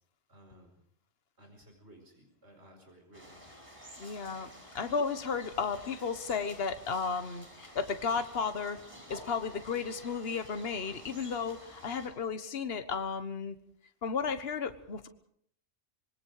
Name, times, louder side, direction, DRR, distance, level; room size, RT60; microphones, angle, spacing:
voice 1, 0.3-0.8 1.4-3.5, right 1 dB, 75° right, 3 dB, 5.3 m, -57 dB
sound 1, 3.1-12.1, equal, 30° right, 7.0 m, -51 dB
voice 2, 4.0-8.8 9.1-13.6 14.0-15.1, left 5 dB, 60° left, 9 dB, 1.5 m, -34 dB
26.0 x 22.5 x 4.9 m, 0.65 s
omnidirectional pair, 1.1 m